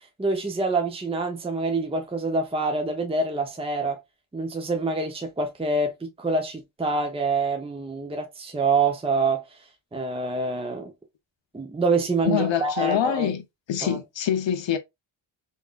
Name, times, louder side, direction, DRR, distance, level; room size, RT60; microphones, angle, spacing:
voice 1, 0.2-4.0 4.3-9.4 9.9-10.9 11.5-13.3 13.8-14.0, right 3 dB, 10° right, 0.7 m, -26 dB
voice 2, 12.3-13.4 13.7-14.8, left 9 dB, 65° left, 0.8 m, -25 dB
3.5 x 2.7 x 2.4 m
cardioid pair, 60°, 48 cm